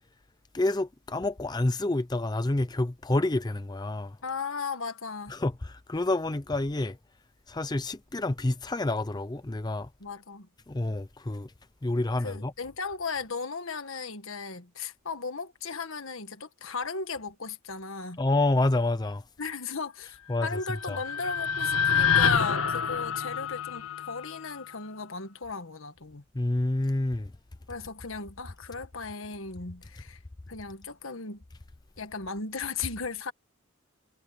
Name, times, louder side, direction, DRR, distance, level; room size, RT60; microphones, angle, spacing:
voice 1, 0.5-4.2 5.3-7.0 7.5-9.9 10.7-11.5 11.8-12.5 18.2-19.2 20.3-20.6 20.9-21.0 26.3-27.3, left 2 dB, 20° left, 0.5 m, -28 dB
voice 2, 4.2-5.4 10.0-10.5 12.2-18.2 19.4-26.2 27.7-30.2 30.5-31.4 32.0-33.3, left 4 dB, 70° left, 1.6 m, -36 dB
sound 1, 20.5-24.7, left 7 dB, 85° left, 1.4 m, -27 dB
head